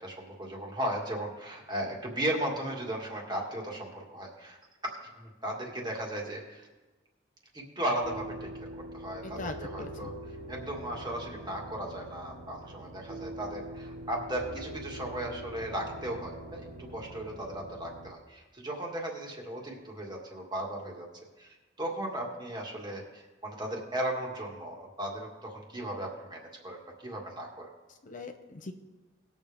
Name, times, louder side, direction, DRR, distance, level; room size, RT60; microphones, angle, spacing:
voice 1, 0.0-4.6 4.8-6.7 7.5-10.1 10.5-16.7 16.9-21.1 21.4-27.7, right 1 dB, 25° right, -1 dB, 2.0 m, -36 dB
sound 1, 8.0-18.1, right 1 dB, 60° right, 1.1 m, -43 dB
voice 2, 9.2-10.1 27.9-28.7, left 3 dB, 45° left, 6 dB, 0.7 m, -41 dB
19.5 x 7.1 x 3.5 m, 1.2 s
head